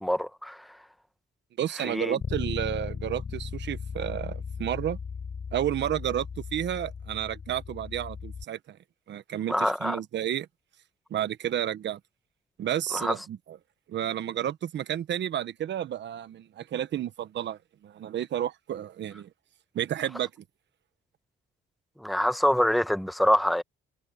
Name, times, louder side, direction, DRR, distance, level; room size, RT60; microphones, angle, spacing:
voice 1, 0.0-0.7 1.8-2.2 9.5-10.0 12.9-13.1 22.0-23.6, equal, ahead, 1.2 m, -25 dB
voice 2, 1.6-5.0 5.5-6.3 6.5-8.8 9.1-10.5 11.1-12.0 12.6-13.6 13.9-19.3 19.7-20.3, right 11 dB, 65° right, 1.2 m, -31 dB
Bass guitar, 2.2-8.4, left 6 dB, 40° left, 5.3 m, -37 dB
cardioid pair, 90°, 20 cm